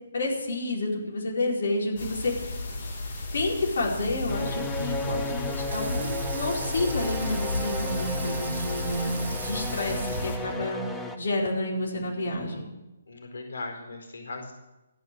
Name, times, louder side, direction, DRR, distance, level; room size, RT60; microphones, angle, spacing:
voice 1, 0.1-2.6 3.3-10.8 11.2-12.6, left 2 dB, 60° left, -2 dB, 4.9 m, -29 dB
sound 1, 2.0-10.4, left 2 dB, 35° left, 3.1 m, -33 dB
sound 2, 4.3-11.2, left 2 dB, 5° left, 0.7 m, -35 dB
Water tap faucet / Sink (filling or washing), 5.5-10.7, right 5 dB, 50° right, 1.9 m, -40 dB
voice 2, 9.0-9.4 11.9-12.2 13.1-14.5, left 2 dB, 90° left, 4 dB, 4.6 m, -40 dB
15.0 x 12.0 x 7.8 m, 1.0 s
hypercardioid pair, 175°, 0 cm